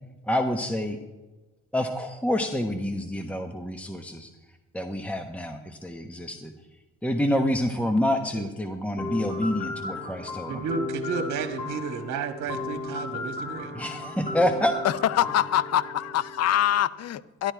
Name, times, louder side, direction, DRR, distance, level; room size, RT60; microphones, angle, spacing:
voice 1, 0.3-1.0 1.7-4.3 4.7-6.5 7.0-10.6 13.7-14.7, left 1 dB, 5° left, 1.0 m, -27 dB
sound 1, 9.0-16.8, left 3 dB, 25° left, 3.5 m, -35 dB
voice 2, 10.5-13.7, right 6 dB, 70° right, 1.4 m, -32 dB
voice 3, 14.8-17.5, left 11 dB, 55° left, 0.6 m, -24 dB
13.0 x 11.5 x 4.6 m
cardioid pair, 90°, 30 cm